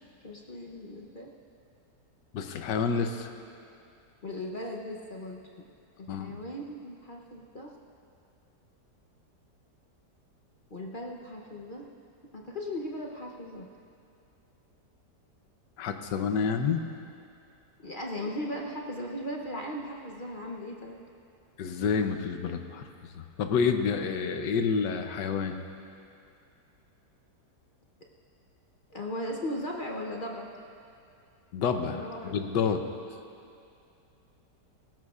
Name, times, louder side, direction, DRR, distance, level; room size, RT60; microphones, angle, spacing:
voice 1, 0.2-1.3 4.2-5.4 6.0-7.7 10.7-11.8 12.3-13.7 17.8-21.0 28.9-30.5 31.9-32.5, left 1 dB, 40° left, -1 dB, 0.7 m, -37 dB
voice 2, 2.3-3.3 6.1-6.4 15.8-16.8 21.6-22.8 23.2-25.6 31.5-32.9, left 6 dB, 85° left, 6 dB, 1.4 m, -29 dB
19.0 x 17.0 x 2.4 m, 2.6 s
omnidirectional pair, 1.8 m